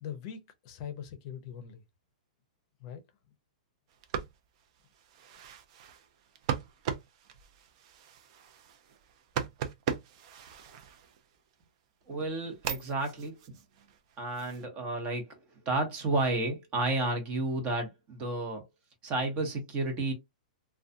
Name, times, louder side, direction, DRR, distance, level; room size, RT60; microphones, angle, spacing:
voice 1, 0.0-1.8 2.8-3.0, left 8 dB, 45° left, 0.6 m, -42 dB
sound 1, 3.9-11.5 12.0-14.6, right 8 dB, 50° right, 0.5 m, -39 dB
voice 2, 12.1-13.3 14.2-15.4 15.7-18.6 19.0-20.1, right 2 dB, 30° right, 0.9 m, -31 dB
2.4 x 2.2 x 2.6 m
hypercardioid pair, 140°, 4 cm